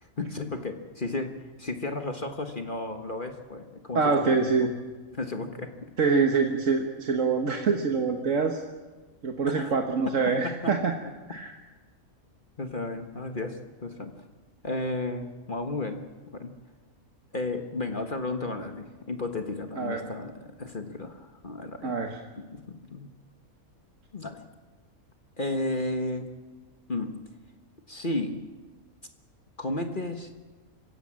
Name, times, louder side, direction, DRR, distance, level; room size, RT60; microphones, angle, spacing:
voice 1, 0.0-4.7 5.1-5.9 9.5-9.8 10.1-10.2 10.4-10.7 12.6-14.2 14.6-16.5 17.3-22.0 22.4-23.1 24.1-24.4 25.4-26.3 26.9-27.1 27.9-28.4 29.6-30.3, left 2 dB, 35° left, 5 dB, 1.5 m, -33 dB
voice 2, 4.0-4.7 6.0-8.6 9.2-10.9 11.3-11.5 19.8-20.1 21.8-22.2, right 4 dB, 60° right, 3 dB, 1.7 m, -25 dB
25.5 x 16.0 x 7.6 m, 1.3 s
omnidirectional pair, 1.5 m